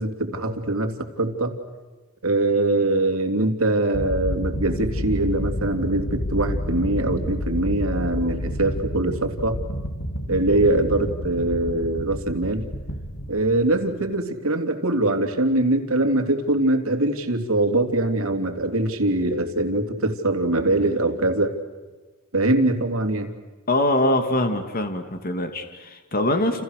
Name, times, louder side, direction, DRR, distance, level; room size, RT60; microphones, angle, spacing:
voice 1, 0.0-1.5 2.2-9.6 10.3-12.7 13.3-21.5 22.3-23.3, right 2 dB, 70° right, 5 dB, 3.2 m, -23 dB
sound 1, 3.9-14.0, equal, 85° left, 3.1 m, -29 dB
voice 2, 23.7-26.6, left 1 dB, 45° left, 7 dB, 2.6 m, -23 dB
29.5 x 29.5 x 6.7 m, 1.3 s
head